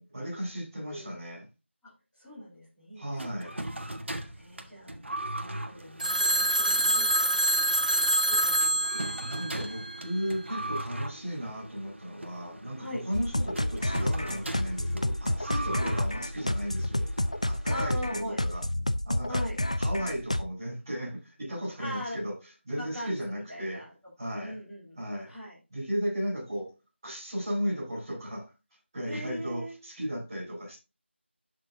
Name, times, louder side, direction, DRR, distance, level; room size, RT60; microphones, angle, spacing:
voice 1, 0.0-1.4 2.9-3.6 9.2-17.1 17.5-18.6 19.0-19.4 19.8-22.3 22.6-23.8 24.2-24.5 25.0-25.3 25.7-26.7 27.0-28.5 28.9-30.8, equal, 20° right, 5.5 m, -35 dB
voice 2, 0.8-1.2 1.8-3.5 4.3-4.9 5.3-9.6 12.8-13.0 15.8-15.9 17.6-18.4 19.3-19.6 21.8-22.2 22.7-23.9 24.2-24.9 25.2-25.6 29.0-29.7, equal, ahead, 3.2 m, -41 dB
sound 1, 3.2-17.9, right 1 dB, 65° right, 1.5 m, -40 dB
Telephone, 6.0-10.2, right 1 dB, 40° right, 0.6 m, -26 dB
sound 2, 13.1-20.4, left 1 dB, 30° left, 0.3 m, -29 dB
12.0 x 6.8 x 2.7 m
figure-of-eight pair, 175°, 7 cm